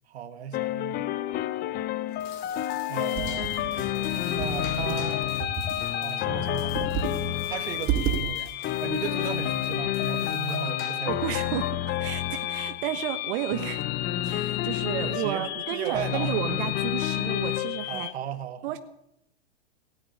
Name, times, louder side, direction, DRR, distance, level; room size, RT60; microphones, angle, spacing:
voice 1, 0.1-1.1 2.9-5.2 6.0-11.5 15.0-16.3 17.9-18.8, right 9 dB, 80° right, 8 dB, 1.4 m, -36 dB
sound 1, 0.5-18.1, left 13 dB, 30° left, 0.7 m, -29 dB
sound 2, 2.0-11.3, left 7 dB, 50° left, 3.3 m, -50 dB
Computer keyboard, 3.2-5.9 6.5-7.2 7.5-7.6 7.9-8.2, right 8 dB, 35° right, 2.7 m, -31 dB
voice 2, 11.0-13.8 14.2-18.1 18.6-18.8, right 13 dB, 55° right, 8 dB, 1.3 m, -32 dB
17.5 x 8.8 x 8.4 m, 0.79 s
hypercardioid pair, 115°, 32 cm